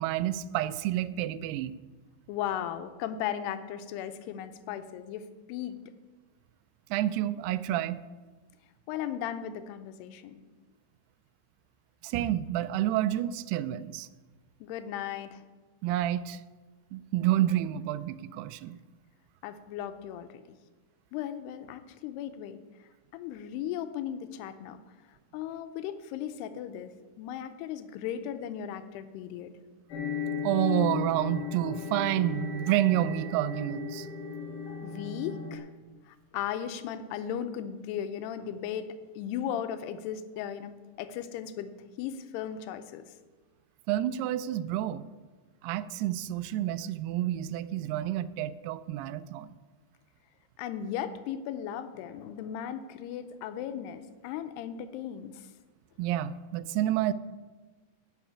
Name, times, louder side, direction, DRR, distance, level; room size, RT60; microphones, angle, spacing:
voice 1, 0.0-1.7 6.9-8.0 12.0-14.1 15.8-16.4 16.9-18.8 30.4-34.1 43.9-45.0 45.6-49.5 56.0-57.1, right 13 dB, 85° right, 14 dB, 2.5 m, -29 dB
voice 2, 2.3-5.8 8.9-10.4 14.6-15.4 19.4-20.6 21.1-22.6 23.1-24.8 25.1-29.5 34.8-35.7 36.1-41.7 42.0-43.0 50.6-55.5, left 9 dB, 90° left, 10 dB, 2.7 m, -36 dB
sound 1, 29.9-35.6, left 6 dB, 65° left, 2.6 m, -36 dB
11.5 x 5.8 x 8.6 m, 1.3 s
omnidirectional pair, 4.6 m